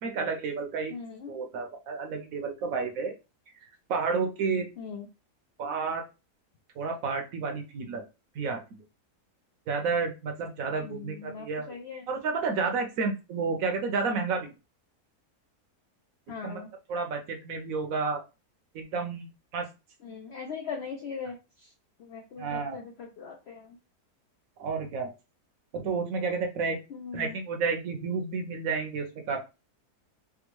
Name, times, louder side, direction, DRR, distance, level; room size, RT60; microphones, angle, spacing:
voice 1, 0.0-1.0 1.3-3.1 3.9-4.7 5.6-6.0 6.8-8.0 8.3-8.6 9.7-11.7 12.1-14.5 16.4-16.6 16.9-18.2 18.7-19.7 22.4-22.8 24.6-25.1 25.7-26.8 27.1-29.4, right 4 dB, 65° right, 4 dB, 1.0 m, -31 dB
voice 2, 0.9-1.3 4.8-5.1 10.8-12.1 16.3-16.7 20.0-21.7 22.0-23.8 26.9-27.4, left 6 dB, 70° left, 2 dB, 0.6 m, -40 dB
3.5 x 2.2 x 2.9 m, 0.29 s
omnidirectional pair, 1.7 m